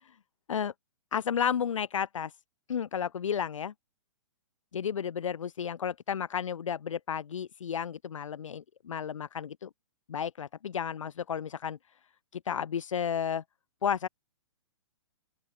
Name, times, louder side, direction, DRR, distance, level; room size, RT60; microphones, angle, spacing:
voice 1, 1.1-2.3 2.7-3.7 4.7-9.7 10.1-11.8 12.3-13.4 13.8-14.1, left 8 dB, 75° left, 5.2 m, -32 dB
open air
hypercardioid pair, 135°, 16 cm